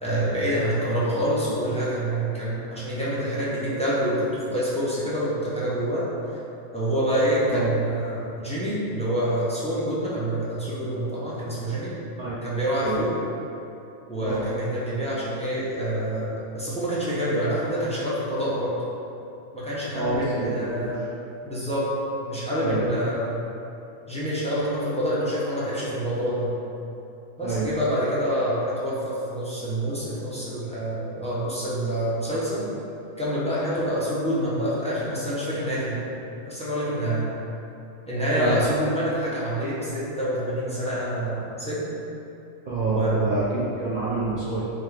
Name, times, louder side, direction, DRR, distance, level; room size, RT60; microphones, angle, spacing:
voice 1, 0.0-6.0 6.3-6.4 6.7-11.9 12.4-13.1 14.1-18.8 19.5-21.0 21.4-21.9 22.2-23.4 24.1-26.5 27.4-32.7 33.2-36.0 36.4-37.3 38.1-41.8 42.8-43.2, equal, 10° left, -9 dB, 0.4 m, -26 dB
voice 2, 19.9-20.9 22.6-22.8 27.4-27.7 38.4-38.6 42.7-44.7, right 3 dB, 65° right, -8 dB, 0.4 m, -27 dB
4.5 x 2.4 x 3.2 m, 2.8 s
omnidirectional pair, 1.4 m